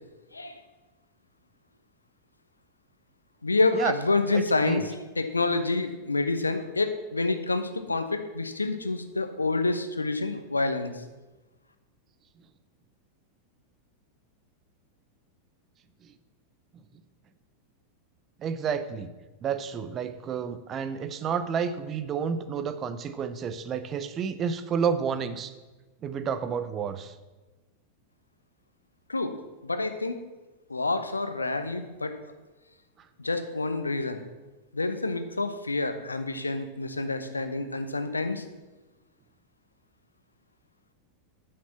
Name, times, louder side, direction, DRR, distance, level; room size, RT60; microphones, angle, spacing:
voice 1, 3.4-10.9 29.1-29.4 29.6-30.2 30.7-32.2 33.2-34.2 34.7-38.4, left 3 dB, 80° left, 9 dB, 0.9 m, -28 dB
voice 2, 4.3-4.9 16.0-16.1 18.4-19.1 19.4-25.5 26.0-27.1, right 7 dB, 30° right, 12 dB, 0.7 m, -30 dB
9.4 x 6.7 x 7.2 m, 1.2 s
figure-of-eight pair, 90°, 0 cm